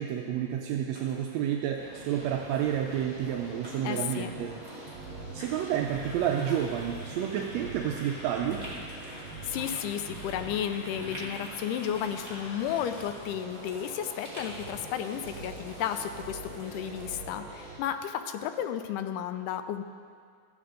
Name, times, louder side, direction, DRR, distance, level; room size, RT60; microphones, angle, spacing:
voice 1, 0.0-4.6 5.3-8.6, right 9 dB, 80° right, 2 dB, 1.6 m, -30 dB
sound 1, 0.9-3.8 4.1-17.3, equal, 15° right, 1.7 m, -49 dB
sound 2, 1.8-17.8, right 2 dB, 45° right, 4.1 m, -44 dB
voice 2, 3.8-4.3 9.4-19.8, left 9 dB, 85° left, 8 dB, 2.1 m, -33 dB
sound 3, 5.3-13.0, left 1 dB, 50° left, 1.1 m, -48 dB
13.5 x 8.9 x 3.9 m, 2.1 s
omnidirectional pair, 3.7 m